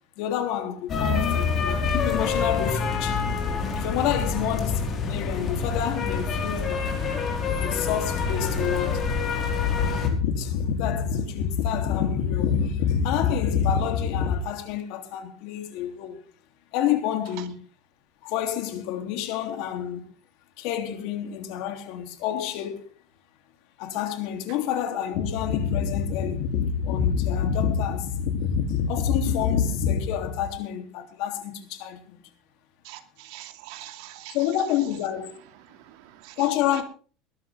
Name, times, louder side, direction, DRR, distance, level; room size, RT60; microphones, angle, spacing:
voice 1, 0.2-3.2 3.7-6.9 7.6-9.0 9.7-16.2 16.7-17.6 18.2-20.0 20.6-22.9 23.8-32.2 34.3-35.4 36.4-36.8, left 8 dB, 65° left, 3.3 m, -27 dB
sound 1, 0.9-10.1, left 5 dB, 35° left, 4.6 m, -26 dB
voice 2, 32.8-34.4 35.6-36.8, right 15 dB, 70° right, 2.7 m, -44 dB
20.5 x 12.0 x 3.7 m
supercardioid pair, 145°, 0 cm